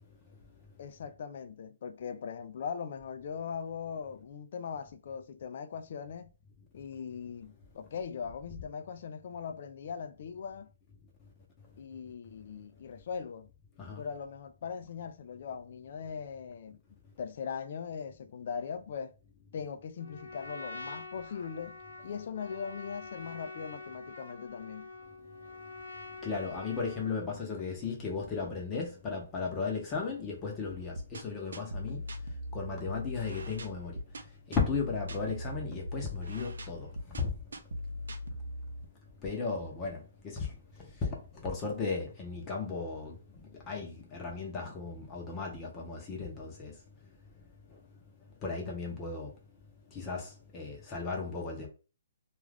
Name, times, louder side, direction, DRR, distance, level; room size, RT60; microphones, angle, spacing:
voice 1, 0.8-6.3 6.7-10.7 11.8-13.5 14.0-16.8 17.2-19.1 19.5-24.9, left 6 dB, 50° left, 0.3 m, -40 dB
Trumpet, 20.0-27.3, left 2 dB, 85° left, 0.6 m, -46 dB
voice 2, 26.2-32.0 32.5-34.0 34.5-37.3 39.2-40.5 41.3-43.2 43.7-46.7 48.4-49.3 49.9-51.7, left 4 dB, 15° left, 0.7 m, -35 dB
sound 1, 30.7-38.9, left 1 dB, 85° right, 0.5 m, -40 dB
2.4 x 2.3 x 3.3 m
hypercardioid pair, 165°, 0 cm